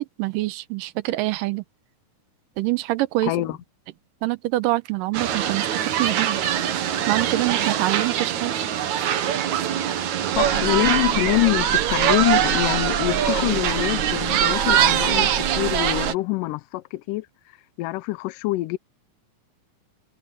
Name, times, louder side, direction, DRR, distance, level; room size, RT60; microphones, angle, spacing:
voice 1, 0.0-1.6 2.6-3.3 4.2-5.7 6.0-6.4 7.1-8.5, right 18 dB, 85° right, 2.3 m, -25 dB
voice 2, 3.2-3.6 10.4-17.3 17.8-18.8, left 19 dB, 80° left, 2.1 m, -25 dB
sound 1, 5.1-16.1, right 10 dB, 65° right, 2.5 m, -23 dB
sound 2, 10.3-16.1, right 4 dB, 40° right, 4.6 m, -33 dB
omnidirectional pair, 3.9 m